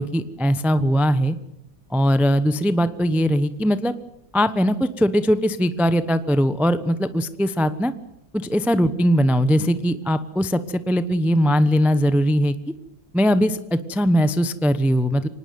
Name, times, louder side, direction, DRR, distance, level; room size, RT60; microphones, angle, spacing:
voice 1, 0.0-1.4 1.9-3.9 4.3-7.9 8.3-12.6 13.1-15.3, equal, ahead, 12 dB, 0.5 m, -20 dB
25.5 x 19.0 x 9.5 m, 0.81 s
omnidirectional pair, 2.2 m